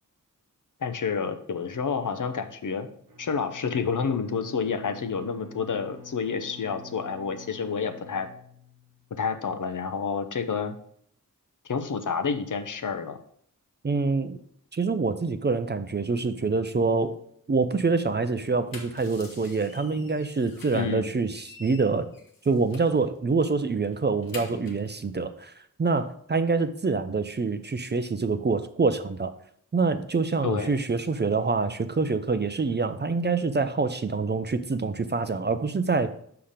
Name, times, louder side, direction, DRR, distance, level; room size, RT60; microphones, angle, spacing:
voice 1, 0.8-2.9 3.2-8.3 9.1-10.8 11.6-13.2 20.7-21.1 30.4-30.7, left 5 dB, 65° left, 8 dB, 0.8 m, -29 dB
Bowed string instrument, 3.1-9.1, left 3 dB, 80° right, 1.2 m, -48 dB
voice 2, 13.8-14.4 14.7-17.2 17.5-22.1 22.5-25.5 25.8-29.3 29.7-36.1, right 4 dB, 30° right, 10 dB, 0.5 m, -26 dB
sound 1, 18.5-20.9 21.3-23.0 23.4-23.5 23.8-24.9, left 3 dB, 90° left, 1.3 m, -47 dB
5.8 x 5.7 x 5.0 m, 0.65 s
wide cardioid pair, 110°, 33 cm